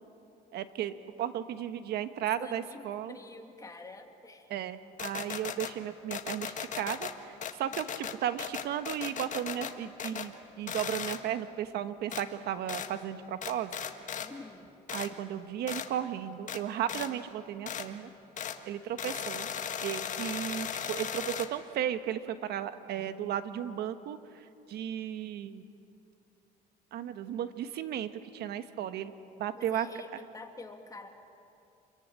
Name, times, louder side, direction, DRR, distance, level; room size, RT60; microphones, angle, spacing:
voice 1, 0.5-3.2 4.5-13.7 14.9-18.1 18.7-19.5 19.8-24.2 24.7-25.6 26.9-29.1 29.4-29.9, right 10 dB, 75° right, 10 dB, 1.4 m, -35 dB
voice 2, 2.4-2.8 3.1-4.4 14.2-14.7 29.6-31.1, left 3 dB, 20° left, 3 dB, 2.7 m, -47 dB
sound 1, 5.0-5.7 6.1-7.1 7.4-9.7 10.0-10.3 10.7-11.2 12.1-12.2 12.7-12.9 13.4-14.3 14.9-15.1 15.7-15.9 16.5-16.6 16.9-17.1 17.7-17.9 18.4-18.6 19.0-21.5, left 8 dB, 45° left, 1.7 m, -37 dB
27.5 x 23.0 x 8.9 m, 2.7 s
cardioid pair, 110°, 17 cm